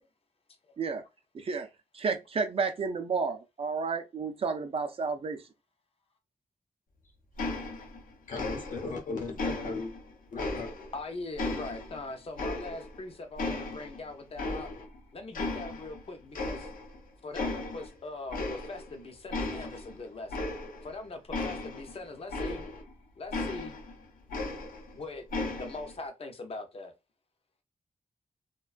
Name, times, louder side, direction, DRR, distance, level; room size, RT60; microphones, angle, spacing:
voice 1, 1.3-1.7 1.9-5.4, right 5 dB, 45° right, 0.4 m, -31 dB
sound 1, 7.4-8.1 8.4-9.0 9.4-11.0 11.4-13.0 13.4-15.0 15.3-16.0 16.3-17.0 17.3-17.9 18.3-19.0 19.3-22.9 23.3-25.0 25.3-25.9, left 2 dB, 85° left, 0.6 m, -36 dB
voice 2, 8.3-9.9 10.3-10.7, left 3 dB, 70° left, 0.9 m, -36 dB
voice 3, 10.9-14.7 15.1-16.7 17.2-20.5 20.8-22.7 23.2-23.8 24.9-25.2 25.6-26.9, left 2 dB, 45° left, 0.6 m, -41 dB
2.3 x 2.2 x 2.4 m
wide cardioid pair, 130°, 14 cm